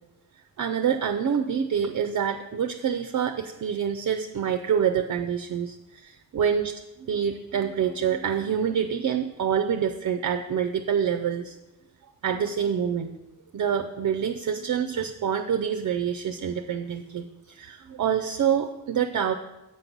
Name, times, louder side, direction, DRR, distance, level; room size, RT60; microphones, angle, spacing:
voice 1, 0.6-6.7 7.1-11.6 12.2-13.1 13.5-19.3, right 8 dB, 55° right, 6 dB, 0.5 m, -26 dB
7.3 x 3.9 x 6.0 m, 0.98 s
cardioid pair, 60°, 37 cm